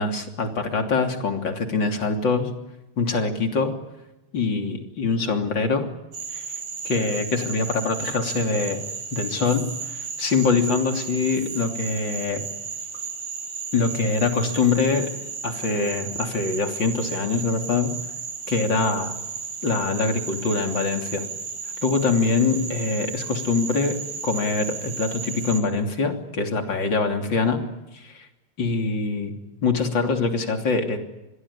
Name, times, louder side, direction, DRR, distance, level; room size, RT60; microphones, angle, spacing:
voice 1, 0.0-2.5 3.0-3.7 4.3-5.9 6.3-6.5 6.8-8.8 9.1-12.4 13.7-15.1 15.4-17.9 18.5-19.2 19.6-21.3 21.8-24.0 24.2-27.6 27.9-28.3 28.6-29.4 29.6-31.0, left 4 dB, 40° left, 4 dB, 3.6 m, -24 dB
Frog, 6.1-25.6, right 5 dB, 80° right, 4.9 m, -34 dB
26.5 x 21.5 x 9.9 m, 0.98 s
omnidirectional pair, 3.4 m